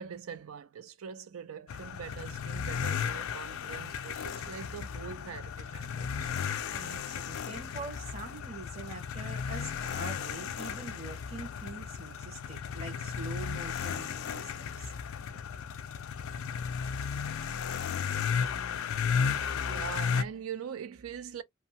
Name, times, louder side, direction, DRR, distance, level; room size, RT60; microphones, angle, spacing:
voice 1, 0.0-6.6 19.6-21.4, right 7 dB, 85° right, 0.4 m, -43 dB
sound 1, 1.7-20.2, left 6 dB, 75° left, 0.4 m, -34 dB
voice 2, 6.7-14.9, right 2 dB, 30° right, 1.1 m, -44 dB
2.7 x 2.1 x 2.7 m
head